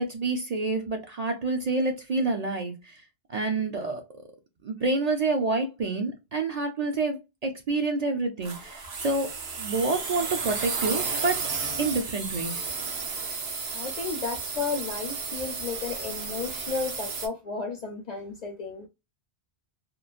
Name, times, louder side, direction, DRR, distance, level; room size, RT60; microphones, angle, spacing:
voice 1, 0.0-3.0 3.3-4.0 4.6-9.3 9.6-11.4 11.8-12.7, right 3 dB, 50° right, 0.6 m, -28 dB
sound 1, 8.4-17.3, right 5 dB, 75° right, 1.0 m, -33 dB
voice 2, 13.7-18.9, left 5 dB, 50° left, 0.6 m, -33 dB
3.0 x 2.1 x 2.4 m
omnidirectional pair, 1.0 m